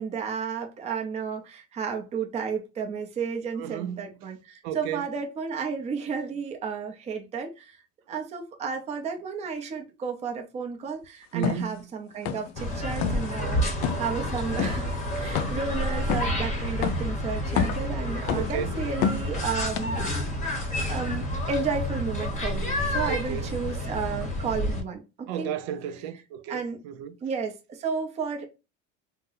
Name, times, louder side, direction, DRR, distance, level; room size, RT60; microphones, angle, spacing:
voice 1, 0.0-7.8 8.1-14.9 15.2-20.0 20.9-25.5 26.5-26.8 27.2-28.4, right 5 dB, 20° right, 0.5 m, -32 dB
voice 2, 3.6-4.1 4.6-5.1 11.3-11.9 18.3-18.8 23.1-23.5 25.3-27.2, right 9 dB, 80° right, 0.5 m, -33 dB
sound 1, 11.4-11.6 12.2-12.6 12.9-13.3 13.8-14.1 14.6-14.8 15.3-15.7 16.1-16.4 16.8-17.1 17.5-17.9 18.3-18.6 19.0-19.3 19.7-19.8, left 8 dB, 55° left, 0.5 m, -28 dB
sound 2, 12.6-24.8, left 1 dB, 20° left, 0.8 m, -29 dB
2.7 x 2.0 x 3.8 m
cardioid pair, 135°, 33 cm